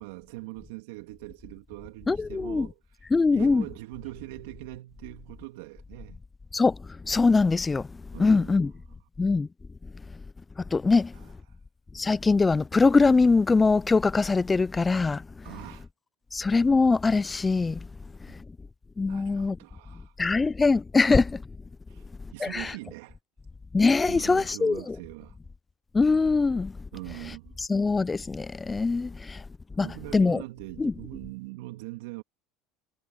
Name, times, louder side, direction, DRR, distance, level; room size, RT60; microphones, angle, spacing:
voice 1, 0.0-3.1 3.3-6.2 8.1-9.0 11.1-11.6 15.4-15.9 18.3-18.4 19.1-20.2 21.9-23.2 24.1-25.4 26.9-27.6 29.7-32.2, right 21 dB, 75° right, 2.6 m, -42 dB
voice 2, 2.1-2.7 3.1-3.6 6.5-6.8 7.1-7.9 8.2-8.7 9.2-9.5 10.7-11.1 11.9-15.2 16.3-17.8 19.0-19.6 20.2-21.4 22.4-22.7 23.7-25.0 25.9-26.7 27.7-29.4 29.8-29.9 30.1-30.4 30.8-30.9, left 4 dB, 20° left, 0.3 m, -22 dB
hypercardioid pair, 80°, 0 cm